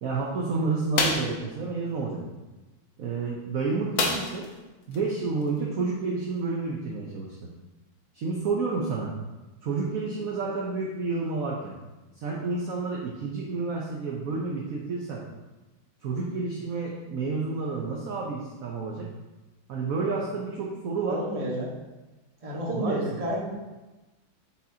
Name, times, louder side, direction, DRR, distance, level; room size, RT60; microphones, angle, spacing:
voice 1, 0.0-2.2 3.0-4.5 4.9-7.4 8.1-9.1 9.6-11.8 12.2-15.2 16.0-19.1 19.7-21.2 22.7-23.0, right 4 dB, 65° right, -2 dB, 0.8 m, -30 dB
sound 1, 1.0-1.4 4.0-4.5 4.9-5.0 5.4-5.6, left 3 dB, 85° left, 1.7 m, -26 dB
voice 2, 21.1-21.7 22.4-23.6, equal, 20° right, -5 dB, 1.1 m, -30 dB
6.3 x 5.8 x 2.8 m, 1.1 s
omnidirectional pair, 2.2 m